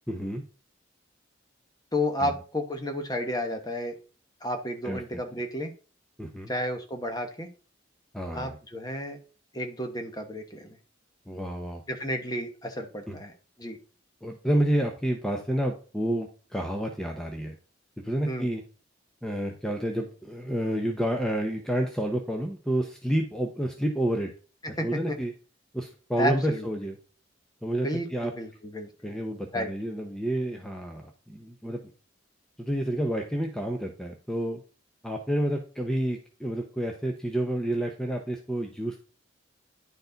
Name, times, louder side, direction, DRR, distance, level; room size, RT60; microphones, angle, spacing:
voice 1, 0.1-0.4 2.2-2.3 4.8-5.2 6.2-6.5 8.1-8.6 11.3-11.8 13.1-13.2 14.2-17.6 18.0-18.6 19.2-24.3 24.7-25.3 25.7-26.9 27.6-28.3 29.0-31.8 32.6-34.6 35.0-39.0, right 1 dB, 5° left, 2 dB, 0.7 m, -29 dB
voice 2, 1.9-4.0 4.4-5.7 6.5-7.5 8.3-9.2 9.5-10.8 11.9-13.3 13.6-13.8 18.3-18.5 24.6-25.2 26.2-26.7 27.8-29.1 29.5-29.7, left 1 dB, 20° left, 5 dB, 1.1 m, -32 dB
10.5 x 4.7 x 3.9 m, 0.38 s
head